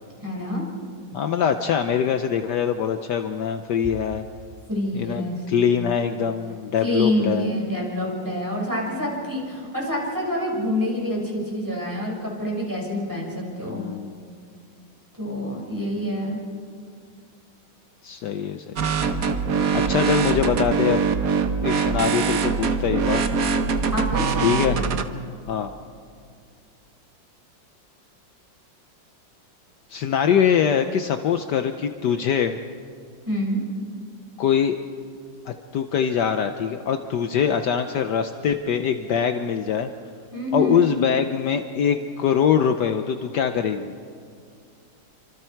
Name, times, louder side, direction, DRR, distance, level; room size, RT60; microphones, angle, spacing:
voice 1, 0.2-0.7 4.7-5.8 6.8-13.8 15.2-16.4 23.8-24.5 33.3-33.6 40.3-40.8, left 1 dB, 10° right, -3 dB, 5.7 m, -27 dB
voice 2, 1.1-4.2 4.9-7.5 13.7-14.2 18.0-18.7 19.7-21.0 21.6-23.2 24.4-24.8 25.5-25.7 29.9-32.6 34.4-34.7 35.5-39.9 40.5-43.9, left 8 dB, 65° left, 7 dB, 1.3 m, -23 dB
sound 1, 18.8-25.0, right 5 dB, 55° right, 1.3 m, -23 dB
30.0 x 25.5 x 4.6 m, 2.3 s
omnidirectional pair, 2.0 m